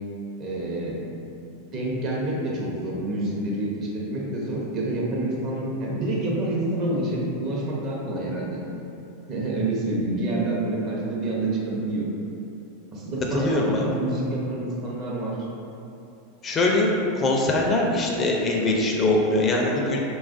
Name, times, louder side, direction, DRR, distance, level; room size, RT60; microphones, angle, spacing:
voice 1, 0.4-1.0 1.7-8.6 9.3-12.1 12.9-15.4, right 2 dB, 45° right, -4 dB, 0.7 m, -27 dB
voice 2, 13.3-13.8 16.4-16.9 17.2-20.0, left 2 dB, 30° left, -1 dB, 0.4 m, -22 dB
3.0 x 2.3 x 2.5 m, 2.8 s
hypercardioid pair, 105°, 0 cm